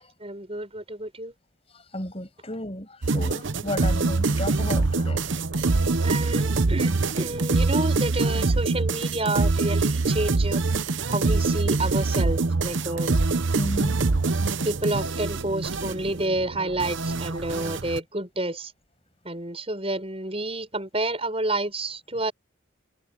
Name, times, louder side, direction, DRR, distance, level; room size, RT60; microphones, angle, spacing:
voice 1, 0.2-1.3 6.0-10.6 11.1-13.2 14.6-18.7 19.2-22.3, right 2 dB, 30° right, 6.7 m, -29 dB
voice 2, 1.9-5.2 13.6-13.9, left 1 dB, 30° left, 7.3 m, -33 dB
sound 1, 3.0-18.0, right 3 dB, 65° right, 0.9 m, -24 dB
head